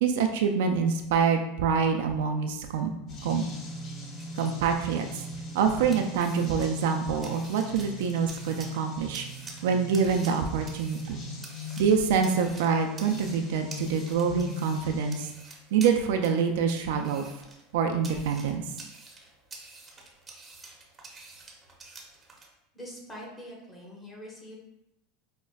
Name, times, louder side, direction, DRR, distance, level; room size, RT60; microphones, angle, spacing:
voice 1, 0.0-2.9 3.2-3.4 4.4-5.2 5.5-9.3 9.6-11.2 11.8-15.3 15.7-17.2 17.7-18.6, right 6 dB, 75° right, 5 dB, 0.3 m, -26 dB
sound 1, 3.1-15.3, left 1 dB, 45° left, 0.9 m, -41 dB
sound 2, 3.9-22.5, right 3 dB, 20° right, 0.7 m, -49 dB
voice 2, 22.7-24.6, equal, 20° left, -3 dB, 1.2 m, -44 dB
5.2 x 2.1 x 2.3 m, 0.87 s
supercardioid pair, 110°, 0 cm